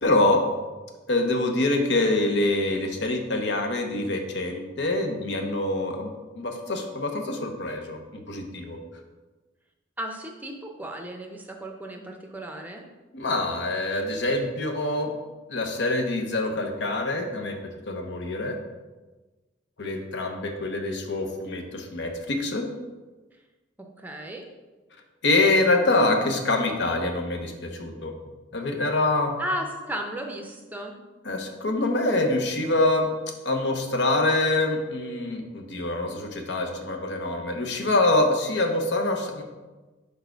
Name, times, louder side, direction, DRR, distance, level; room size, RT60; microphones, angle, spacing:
voice 1, 0.0-0.4 1.1-8.8 13.1-15.1 15.5-17.6 17.9-18.6 19.8-22.6 25.2-28.1 28.5-29.3 31.2-33.1 33.4-39.4, left 2 dB, 65° left, 4 dB, 0.8 m, -25 dB
voice 2, 10.0-12.8 23.8-24.4 29.4-30.9, right 1 dB, 10° right, 2 dB, 0.6 m, -34 dB
4.8 x 4.5 x 4.5 m, 1.2 s
head